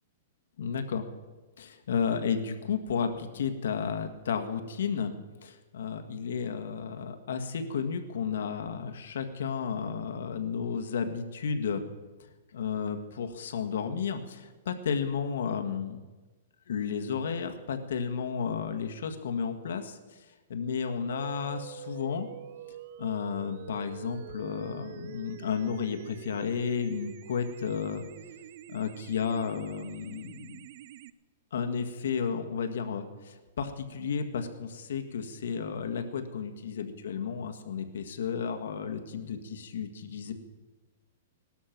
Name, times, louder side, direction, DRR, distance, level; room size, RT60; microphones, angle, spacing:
voice 1, 0.6-1.1 1.6-5.1 5.4-11.8 12.2-16.0 16.7-20.2 20.5-22.3 23.0-28.0 28.7-30.6 31.5-40.3, left 6 dB, 75° left, 7 dB, 1.8 m, -32 dB
sound 1, 21.1-31.1, right 11 dB, 45° right, 0.6 m, -46 dB
19.0 x 12.5 x 6.1 m, 1.3 s
hypercardioid pair, 165°, 0 cm